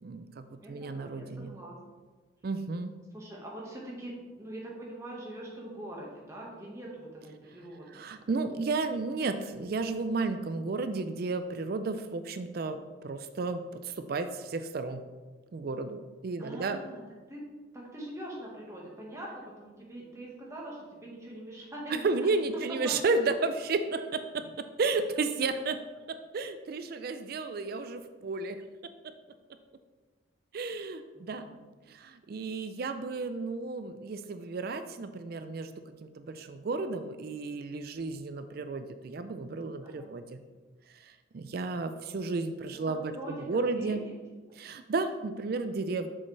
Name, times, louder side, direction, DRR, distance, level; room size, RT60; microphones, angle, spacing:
voice 1, 0.0-1.5 2.4-2.9 7.9-15.0 15.5-16.8 21.9-25.8 26.3-28.6 30.5-31.5 31.9-35.7 36.0-40.4 40.9-44.0 44.5-46.1, right 3 dB, 50° right, 10 dB, 0.4 m, -33 dB
voice 2, 0.6-1.8 3.1-8.0 16.4-17.0 17.3-17.4 17.7-22.9 31.1-31.5 39.8-40.1 42.7-44.2, right 1 dB, 15° right, -3 dB, 1.4 m, -43 dB
7.3 x 6.5 x 3.3 m, 1.3 s
head